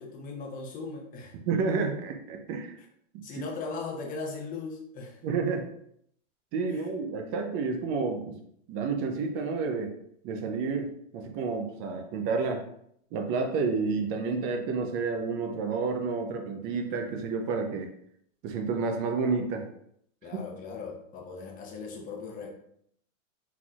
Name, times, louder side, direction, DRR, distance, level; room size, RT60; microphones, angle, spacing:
voice 1, 0.0-1.4 3.2-5.2 6.7-6.9 20.2-22.5, left 4 dB, 20° left, 1 dB, 0.8 m, -38 dB
voice 2, 1.5-2.7 3.1-3.4 5.2-5.6 6.5-8.4 8.7-9.9 10.2-12.6 13.1-17.9 18.4-19.7, right 4 dB, 35° right, 4 dB, 0.6 m, -30 dB
4.3 x 4.0 x 2.4 m, 0.69 s
supercardioid pair, 135°, 40 cm